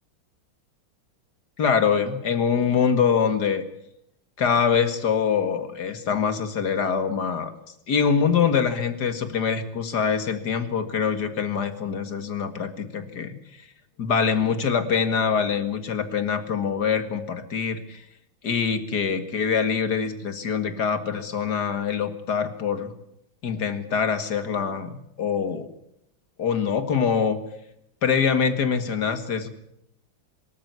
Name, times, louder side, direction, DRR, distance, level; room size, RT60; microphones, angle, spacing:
voice 1, 1.6-3.6 4.4-7.5 7.9-13.4 14.0-18.0 18.4-22.9 23.4-25.7 26.4-27.4 28.0-29.5, left 6 dB, 55° left, 9 dB, 2.4 m, -24 dB
24.0 x 13.0 x 9.5 m, 0.76 s
omnidirectional pair, 2.2 m